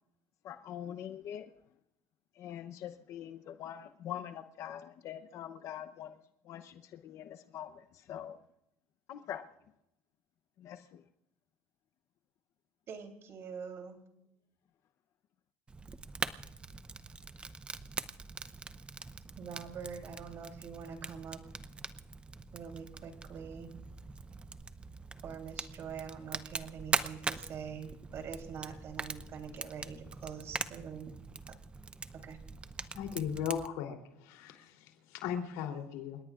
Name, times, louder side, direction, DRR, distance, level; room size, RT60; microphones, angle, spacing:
voice 1, 0.4-1.5 2.4-6.2 6.4-8.4 9.1-9.4 10.6-11.0, left 10 dB, 50° left, 0.8 m, -44 dB
voice 2, 12.9-14.0 19.4-21.4 22.5-23.7 25.2-31.1 32.2-32.4, right 7 dB, 45° right, 3.3 m, -44 dB
Fire, 15.7-33.7, right 4 dB, 15° right, 0.7 m, -42 dB
voice 3, 32.9-36.2, left 8 dB, 90° left, 3.3 m, -37 dB
29.5 x 18.0 x 2.5 m
cardioid pair, 130°, 6 cm